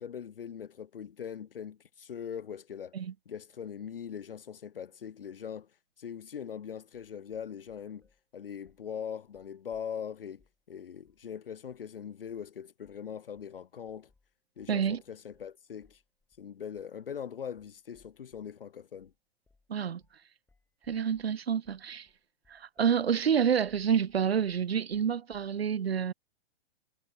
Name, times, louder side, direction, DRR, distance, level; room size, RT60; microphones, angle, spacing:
voice 1, 0.0-2.9 3.3-5.7 6.0-8.1 8.3-14.1 14.6-16.0 16.4-19.1, left 8 dB, 65° left, 1.4 m, -41 dB
sound 1, 8.0-8.2 8.7-8.9 9.3-10.6 11.1-11.3 11.7-11.9 12.3-12.5 12.8-13.1 13.4-18.6 19.0-19.2 19.5-19.7 20.0-20.2 20.5-25.6, left 3 dB, 5° left, 5.6 m, -70 dB
voice 2, 14.7-15.0 19.7-20.0 20.9-22.1 22.5-26.1, right 8 dB, 80° right, 0.5 m, -28 dB
figure-of-eight pair, 110°, 30 cm